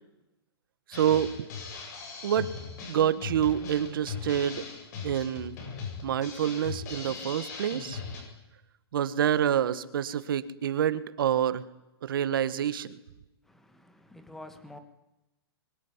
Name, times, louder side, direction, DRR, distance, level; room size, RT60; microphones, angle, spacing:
Drum kit, 0.9-8.2, left 5 dB, 40° left, 7.9 m, -39 dB
voice 1, 0.9-1.3 2.2-2.5 2.9-4.7 5.0-5.6 6.0-8.0 8.9-11.6 12.0-13.0, right 9 dB, 55° right, 14 dB, 1.7 m, -27 dB
voice 2, 13.4-14.8, left 1 dB, ahead, 9 dB, 1.8 m, -48 dB
24.5 x 23.5 x 9.9 m, 0.96 s
hypercardioid pair, 170°, 14 cm